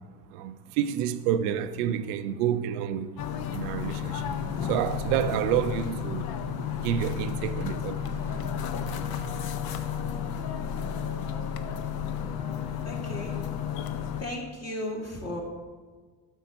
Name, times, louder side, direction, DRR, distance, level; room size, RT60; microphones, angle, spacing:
voice 1, 0.3-3.1 3.5-4.4 4.6-6.4 6.8-8.1, right 10 dB, 80° right, 0.6 m, -29 dB
sound 1, 3.2-14.2, left 9 dB, 50° left, 0.7 m, -32 dB
sound 2, 4.1-9.4, right 6 dB, 50° right, 0.8 m, -44 dB
sound 3, 8.4-14.0, left 1 dB, 75° left, 2.5 m, -46 dB
voice 2, 12.8-13.5 14.2-15.4, left 1 dB, 30° left, 2.3 m, -35 dB
9.1 x 6.4 x 4.0 m
supercardioid pair, 75°, 46 cm